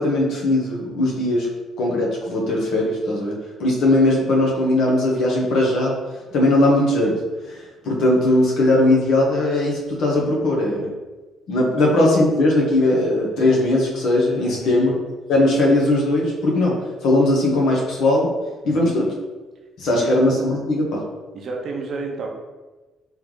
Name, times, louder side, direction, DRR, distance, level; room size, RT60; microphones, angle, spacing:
voice 1, 0.0-1.5 1.8-6.0 6.3-7.2 7.5-7.6 7.8-10.9 11.5-14.9 15.3-16.7 17.0-18.3 18.7-19.1 19.8-21.0, left 1 dB, 65° left, -2 dB, 1.0 m, -19 dB
voice 2, 14.4-14.8 18.6-19.0 19.9-20.2 21.3-22.3, right 4 dB, 40° right, 1 dB, 0.6 m, -31 dB
3.4 x 3.1 x 3.7 m, 1.2 s
cardioid pair, 170°, 0 cm